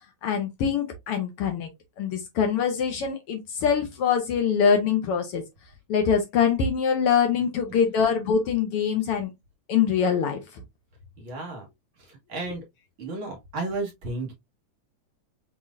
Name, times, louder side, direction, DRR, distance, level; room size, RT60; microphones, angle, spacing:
voice 1, 0.2-1.7 2.0-5.4 5.9-9.3 9.7-10.4 12.4-12.5, left 7 dB, 70° left, 1.4 m, -24 dB
voice 2, 11.2-11.7 12.0-12.6 13.0-14.3, right 3 dB, 50° right, 2.1 m, -33 dB
6.0 x 3.2 x 2.5 m
omnidirectional pair, 3.5 m